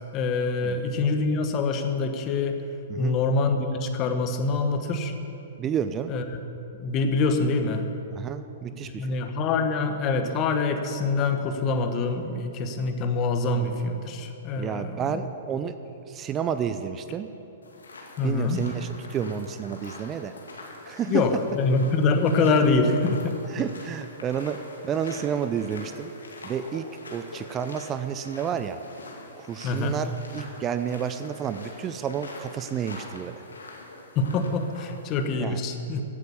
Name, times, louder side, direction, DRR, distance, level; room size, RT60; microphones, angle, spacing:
voice 1, 0.0-2.6 3.0-5.1 6.1-6.2 6.8-7.8 8.8-15.3 18.2-18.6 21.1-23.6 29.6-30.0 34.1-36.0, left 3 dB, 35° left, 6 dB, 1.2 m, -25 dB
voice 2, 5.6-6.1 8.1-9.1 14.6-15.7 16.1-17.3 18.2-20.3 20.9-21.2 23.5-26.1 26.4-28.8 29.4-33.4 35.4-35.6, right 8 dB, 25° right, 11 dB, 0.5 m, -30 dB
sound 1, 17.6-35.3, left 2 dB, 85° left, 2.3 m, -44 dB
15.0 x 8.6 x 6.9 m, 2.9 s
hypercardioid pair, 120°, 0 cm